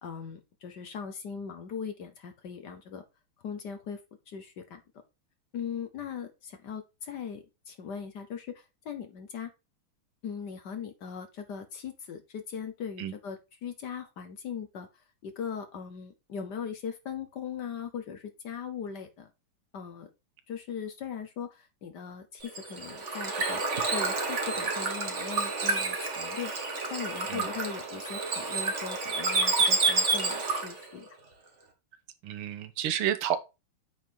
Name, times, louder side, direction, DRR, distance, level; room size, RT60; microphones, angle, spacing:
voice 1, 0.0-3.0 3.4-4.0 4.3-4.8 5.5-9.5 10.2-19.3 19.7-20.1 20.5-23.6 23.9-26.5 26.9-31.1, left 7 dB, 60° left, 1.3 m, -39 dB
Bird / Water, 22.4-30.8, right 3 dB, 35° right, 1.6 m, -29 dB
voice 2, 32.2-33.4, right 10 dB, 80° right, 1.6 m, -30 dB
8.7 x 3.7 x 4.5 m
omnidirectional pair, 2.4 m